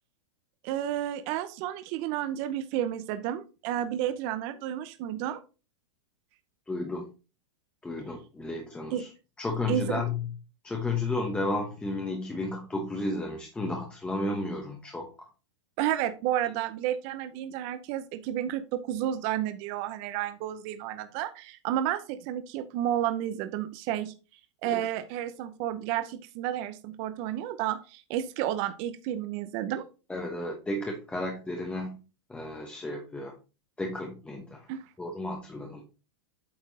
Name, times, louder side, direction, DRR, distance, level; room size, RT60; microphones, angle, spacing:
voice 1, 0.6-5.4 8.9-9.1 9.7-10.0 15.8-24.1 24.6-29.8 34.7-34.9, right 11 dB, 40° right, 10 dB, 0.7 m, -31 dB
voice 2, 6.7-7.1 7.8-9.1 9.4-10.3 10.6-15.3 24.6-24.8 30.1-32.0 32.3-33.3 33.8-34.7 35.0-35.8, left 2 dB, 5° left, 2 dB, 0.9 m, -33 dB
8.5 x 4.4 x 4.0 m, 0.31 s
supercardioid pair, 150°, 15 cm